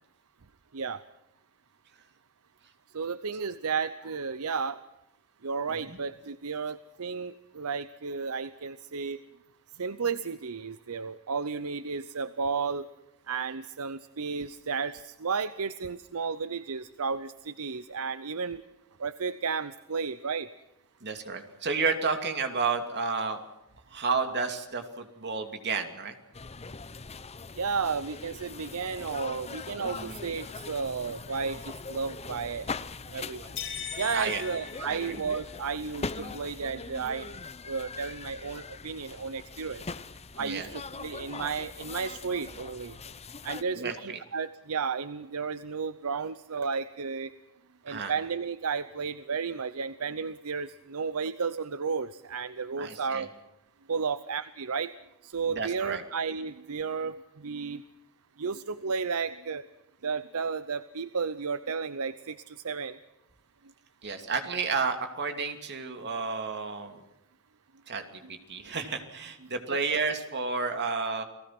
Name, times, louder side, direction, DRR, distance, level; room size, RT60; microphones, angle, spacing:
voice 1, 2.9-4.8 5.4-9.2 9.8-12.8 13.3-18.6 19.0-20.5 27.6-32.7 33.1-33.5 34.0-37.4 37.7-39.8 40.4-43.0 43.4-47.3 47.8-53.3 53.9-54.9 55.2-57.8 58.4-59.6 60.0-63.0, right 5 dB, 75° right, 14 dB, 0.8 m, -33 dB
voice 2, 21.0-23.4 23.9-26.1 29.9-30.2 34.1-34.4 34.8-35.2 36.1-36.4 40.4-40.7 43.8-44.2 47.9-48.1 52.8-53.2 55.5-56.0 64.0-67.0 67.9-71.2, right 4 dB, 50° right, 6 dB, 2.8 m, -31 dB
sound 1, 26.3-43.6, left 4 dB, 30° left, 0.8 m, -41 dB
sound 2, 33.6-35.7, left 8 dB, 60° left, 7.3 m, -39 dB
29.5 x 19.0 x 6.1 m, 0.92 s
head